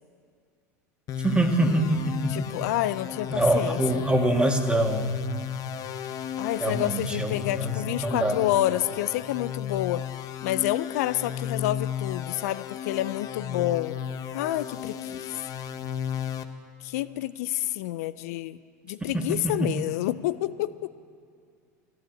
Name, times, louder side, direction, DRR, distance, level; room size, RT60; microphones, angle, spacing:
sound 1, 1.1-16.4, left 9 dB, 45° left, 0.9 m, -34 dB
voice 1, 1.2-2.5 3.3-5.1 6.6-7.8 8.0-8.4 19.6-19.7, right 1 dB, 10° right, 3 dB, 1.9 m, -24 dB
voice 2, 2.3-4.1 6.4-10.0 10.4-14.0 14.3-15.4 16.8-18.6 18.9-20.9, left 15 dB, 70° left, 14 dB, 0.4 m, -28 dB
13.0 x 11.5 x 9.1 m, 2.3 s
hypercardioid pair, 85°, 9 cm